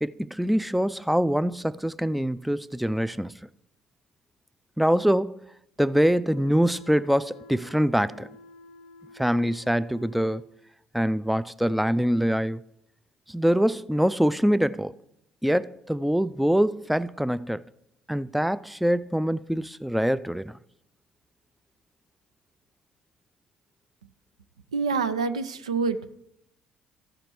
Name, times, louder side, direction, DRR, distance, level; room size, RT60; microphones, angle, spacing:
voice 1, 0.0-3.3 4.8-5.4 5.8-8.3 9.2-10.4 10.9-12.6 13.3-14.9 15.4-17.6 18.1-20.6, equal, ahead, 0.3 m, -24 dB
sound 1, 6.3-10.5, left 2 dB, 70° left, 0.6 m, -49 dB
voice 2, 24.7-26.2, right 4 dB, 90° right, 0.4 m, -27 dB
14.5 x 5.1 x 4.5 m
hypercardioid pair, 50°, 3 cm